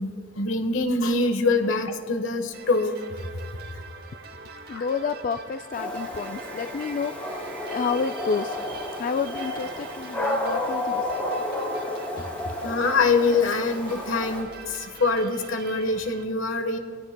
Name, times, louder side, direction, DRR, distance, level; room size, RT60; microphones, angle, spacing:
voice 1, 0.0-3.4 4.7-4.8 12.2-16.8, left 3 dB, 80° left, 6 dB, 1.2 m, -25 dB
sound 1, 2.5-16.2, right 4 dB, 50° right, 0.8 m, -43 dB
voice 2, 4.7-8.6 9.0-11.1 11.4-11.5, left 5 dB, 40° left, 8 dB, 0.3 m, -30 dB
Dog, 5.7-14.4, left 1 dB, 5° left, 3.9 m, -31 dB
23.0 x 16.5 x 2.2 m, 2.1 s
head